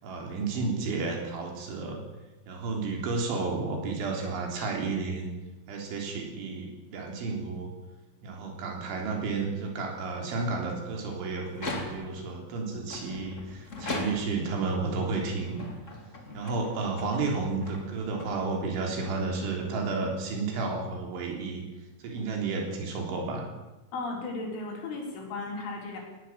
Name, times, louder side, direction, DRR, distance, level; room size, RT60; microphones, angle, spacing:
voice 1, 0.0-2.0 2.5-5.3 5.7-7.7 8.2-15.6 16.3-21.6 22.0-23.5, right 3 dB, 70° right, 1 dB, 5.9 m, -32 dB
sound 1, 11.5-12.3 12.9-14.6 15.2-18.8, left 2 dB, 25° left, 1.7 m, -39 dB
voice 2, 23.9-26.0, left 3 dB, 70° left, 0 dB, 6.8 m, -35 dB
20.0 x 17.5 x 7.5 m, 1.1 s
omnidirectional pair, 5.7 m